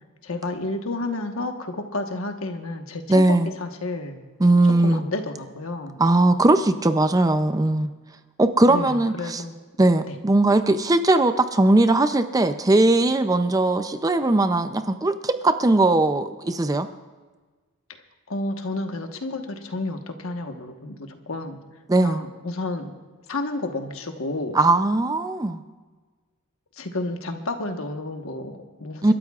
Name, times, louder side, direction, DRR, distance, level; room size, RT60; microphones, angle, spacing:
voice 1, 0.2-4.2 4.8-6.0 8.7-9.6 10.0-10.2 18.3-21.6 22.0-22.9 23.3-24.6 26.8-29.1, left 2 dB, 70° left, 5 dB, 1.3 m, -31 dB
voice 2, 3.1-3.5 4.4-5.0 6.0-7.9 8.4-9.4 9.8-16.9 21.9-22.2 24.5-25.6 29.0-29.1, right 2 dB, 15° right, 10 dB, 0.4 m, -19 dB
29.5 x 13.0 x 2.4 m, 1.3 s
head